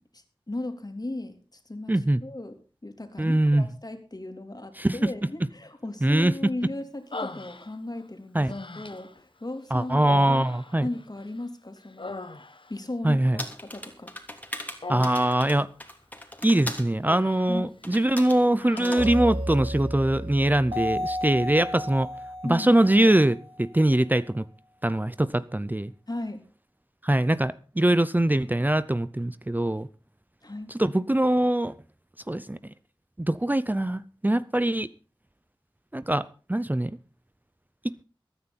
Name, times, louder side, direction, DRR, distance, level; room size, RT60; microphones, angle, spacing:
voice 1, 0.1-2.6 2.8-8.5 8.7-10.5 10.8-12.1 12.7-14.1 17.5-17.7 22.4-22.7 26.1-26.4 30.4-30.7, left 2 dB, 45° left, 3.2 m, -36 dB
voice 2, 1.9-2.2 3.2-3.7 4.8-5.1 6.0-6.3 8.3-8.5 9.7-10.9 13.0-13.4 14.9-15.7 16.4-22.1 22.4-24.5 24.8-25.9 27.0-29.9 30.7-31.7 32.3-32.7 33.2-34.9 35.9-36.9 37.8-37.9, right 1 dB, 20° right, 0.6 m, -23 dB
Human voice, 7.1-8.0 8.5-9.2 10.0-11.4 11.8-12.8 14.8-15.5 16.5-17.6 17.9-18.1 18.6-19.4, left 2 dB, 65° left, 1.4 m, -39 dB
sound 1, 13.4-16.9 17.8-18.4 18.8-19.1, left 1 dB, 20° left, 3.0 m, -38 dB
sound 2, 19.0-23.6, equal, 60° right, 5.5 m, -33 dB
22.5 x 9.7 x 4.2 m
wide cardioid pair, 50°, 9 cm